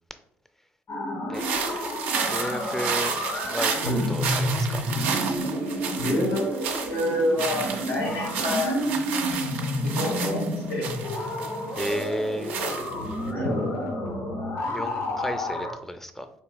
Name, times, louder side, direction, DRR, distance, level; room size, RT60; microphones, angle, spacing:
sound 1, 0.9-15.7, left 1 dB, 60° left, 1.3 m, -30 dB
sound 2, 1.3-13.3, right 6 dB, 90° right, 0.4 m, -32 dB
voice 1, 2.3-3.1 3.5-4.9 11.8-12.5 14.7-16.3, equal, 5° left, 9 dB, 0.4 m, -32 dB
voice 2, 6.0-6.5 6.9-8.8 9.8-10.9 13.3-13.8, left 1 dB, 80° left, -2 dB, 1.5 m, -27 dB
4.0 x 2.8 x 2.2 m, 0.73 s
hypercardioid pair, 50°, 7 cm